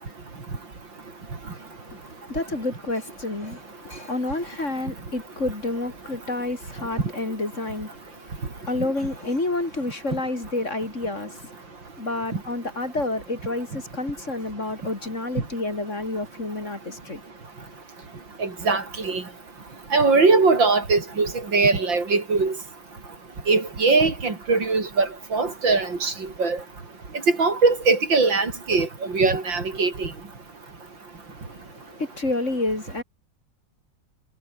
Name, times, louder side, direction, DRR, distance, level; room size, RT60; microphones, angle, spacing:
voice 1, 2.3-7.9 8.5-11.4 12.0-17.2 31.7-33.0, left 2 dB, 40° left, 4.7 m, -29 dB
voice 2, 18.4-19.2 19.9-22.5 23.5-25.1 25.3-26.1 26.4-26.6 27.4-28.9 29.1-30.1, right 4 dB, 90° right, 4.9 m, -21 dB
omnidirectional pair, 2.0 m